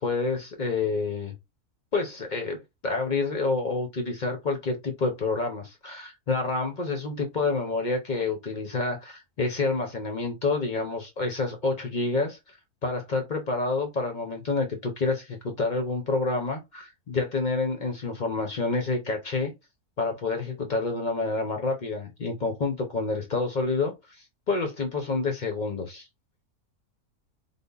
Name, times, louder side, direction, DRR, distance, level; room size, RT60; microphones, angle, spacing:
voice 1, 0.0-1.3 1.9-12.4 12.8-19.5 20.0-23.9 24.5-26.1, left 3 dB, 45° left, 0.6 m, -28 dB
3.5 x 2.0 x 3.6 m
omnidirectional pair, 1.6 m